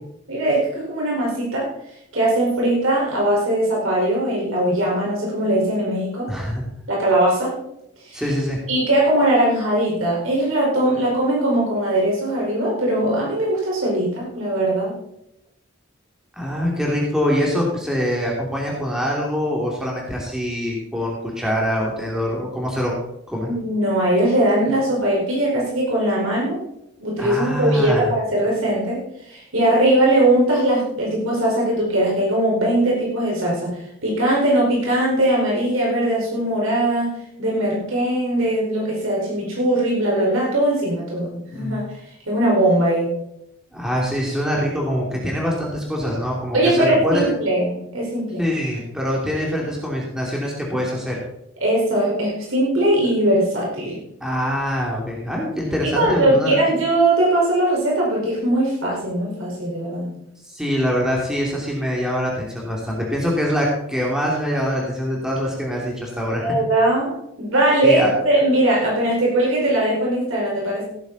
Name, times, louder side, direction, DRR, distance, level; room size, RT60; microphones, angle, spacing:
voice 1, 0.3-1.7 2.1-6.3 6.9-7.6 8.0-8.2 8.7-14.9 23.4-26.6 27.0-29.0 29.3-33.7 34.0-37.1 37.4-41.8 42.3-43.1 46.5-48.4 51.6-54.0 55.8-60.1 66.4-70.8, right 1 dB, 75° right, -4 dB, 4.9 m, -20 dB
voice 2, 6.3-6.6 8.1-8.6 16.4-22.9 23.3-23.5 27.2-28.1 41.5-41.8 43.7-47.3 48.4-51.2 54.2-56.6 60.4-66.4 67.8-68.1, equal, 5° right, -3 dB, 2.8 m, -24 dB
16.5 x 9.7 x 4.1 m, 0.80 s
head